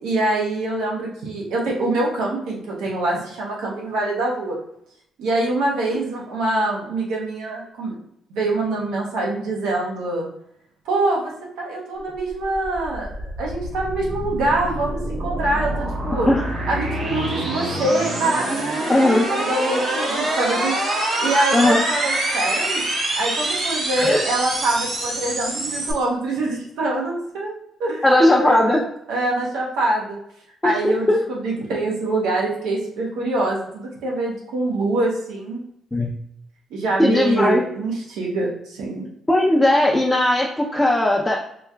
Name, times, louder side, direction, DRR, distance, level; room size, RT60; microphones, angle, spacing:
voice 1, 0.0-4.6 5.2-7.9 8.3-10.3 10.8-11.3 11.6-16.3 16.7-20.7 21.2-22.8 23.2-27.5 27.8-28.1 28.3-28.8 29.1-30.2 30.6-35.6 36.7-39.0, right 2 dB, 90° right, -3 dB, 1.1 m, -24 dB
sound 1, 12.3-25.9, right 1 dB, 60° right, 1.2 m, -25 dB
voice 2, 18.9-19.3 21.5-21.8 24.0-24.2 28.0-28.8 30.6-31.2 35.9-36.1 37.0-37.6 39.3-41.4, left 1 dB, 10° left, -4 dB, 0.6 m, -17 dB
4.4 x 2.8 x 2.3 m, 0.75 s
cardioid pair, 90°, 0 cm